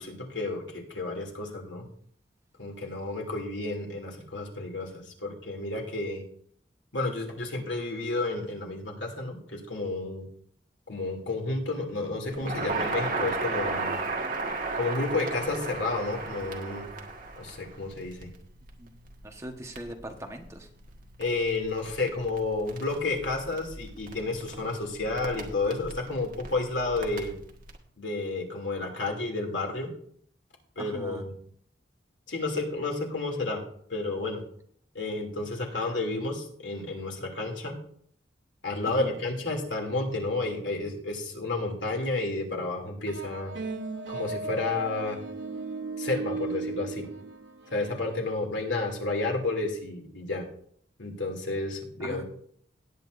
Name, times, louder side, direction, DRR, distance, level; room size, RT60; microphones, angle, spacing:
voice 1, 0.0-1.8 2.6-6.2 6.9-10.3 10.9-14.0 14.7-16.9 17.3-18.3 21.2-27.3 28.0-29.9 30.8-31.3 32.3-33.6 33.9-34.4 34.9-37.8 38.6-43.5 44.1-45.2 46.0-47.1 47.7-50.4 51.0-52.2, left 2 dB, 90° left, 1 dB, 2.7 m, -31 dB
Crackle, 12.3-27.8, right 3 dB, 50° right, 1.6 m, -36 dB
voice 2, 19.2-20.7 30.8-31.2 38.9-39.1 52.0-52.2, right 1 dB, 15° right, 3 dB, 1.2 m, -40 dB
sound 1, 43.1-48.2, right 3 dB, 80° right, 1.2 m, -36 dB
18.0 x 8.9 x 2.6 m, 0.62 s
head